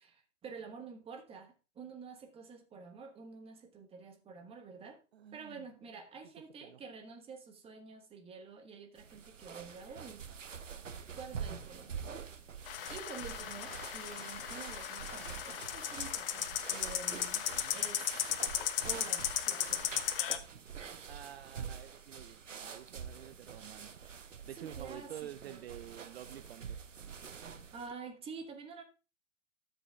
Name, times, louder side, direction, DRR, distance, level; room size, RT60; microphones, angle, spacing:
voice 1, 0.1-5.0 5.3-10.3 11.1-12.1 12.5-17.5 17.7-18.1 18.8-19.9 24.6-25.6 27.7-28.8, right 5 dB, 15° right, 1.4 m, -49 dB
voice 2, 5.1-5.6 6.6-6.8 17.5-17.8 21.1-24.0 24.4-26.8, right 11 dB, 55° right, 0.6 m, -49 dB
sound 1, 9.0-27.9, right 7 dB, 80° right, 0.9 m, -46 dB
sound 2, 12.7-20.4, left 10 dB, 45° left, 0.9 m, -36 dB
12.5 x 7.5 x 2.3 m
figure-of-eight pair, 110°, 37 cm